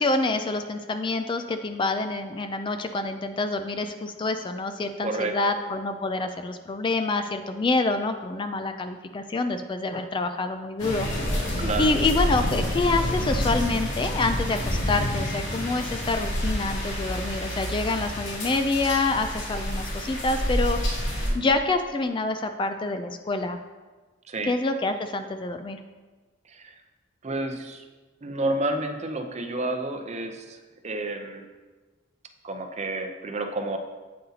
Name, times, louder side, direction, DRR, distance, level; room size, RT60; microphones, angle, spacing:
voice 1, 0.0-11.1 11.8-23.6 24.4-25.8, left 3 dB, 25° left, 8 dB, 0.3 m, -27 dB
voice 2, 5.0-5.5 11.6-11.9 21.2-21.5 24.3-24.5 26.5-26.7 27.2-27.8 28.2-31.4 32.4-33.8, right 2 dB, 35° right, 5 dB, 0.6 m, -30 dB
sound 1, 10.8-21.3, equal, 75° left, 2.3 m, -28 dB
8.3 x 7.7 x 2.8 m, 1.3 s
head